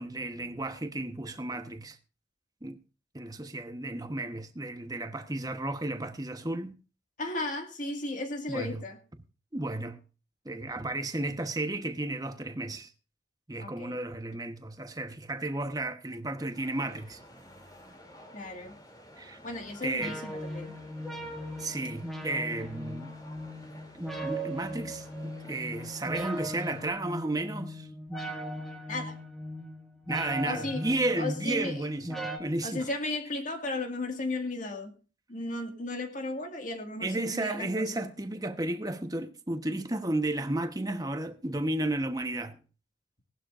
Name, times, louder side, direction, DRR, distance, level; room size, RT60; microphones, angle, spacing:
voice 1, 0.0-2.0 2.6-2.8 3.1-6.7 8.5-8.8 9.5-10.0 10.4-12.9 13.5-17.2 19.2-19.4 19.8-20.2 21.6-23.1 23.9-27.9 30.1-32.8 37.0-42.6, right 2 dB, 20° right, 1.1 m, -33 dB
voice 2, 7.2-9.0 13.6-14.0 18.3-18.8 19.4-20.7 28.9-29.2 30.4-30.8 31.2-31.9 32.6-34.9 35.3-38.0, left 2 dB, 45° left, 2.0 m, -35 dB
sound 1, 16.5-26.9, equal, 20° left, 2.9 m, -52 dB
sound 2, 20.0-32.4, equal, ahead, 1.9 m, -39 dB
18.5 x 12.0 x 2.5 m
head